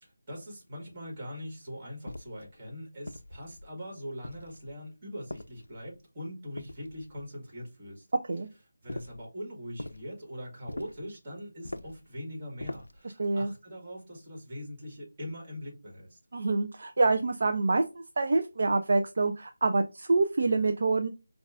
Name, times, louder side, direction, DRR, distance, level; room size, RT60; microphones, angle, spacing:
voice 1, 0.0-8.1 8.8-16.2, equal, 30° right, 1.7 m, -42 dB
sound 1, 2.1-2.5 3.1-3.7 4.2-4.8 5.3-6.0 6.6-7.3 8.9-9.3 9.8-10.1 10.7-11.1 11.6-12.1 12.6-13.0, left 1 dB, 80° left, 0.3 m, -42 dB
voice 2, 13.2-13.5 16.3-21.1, right 3 dB, 55° right, 0.4 m, -26 dB
5.3 x 2.3 x 2.4 m
figure-of-eight pair, 160°, 0 cm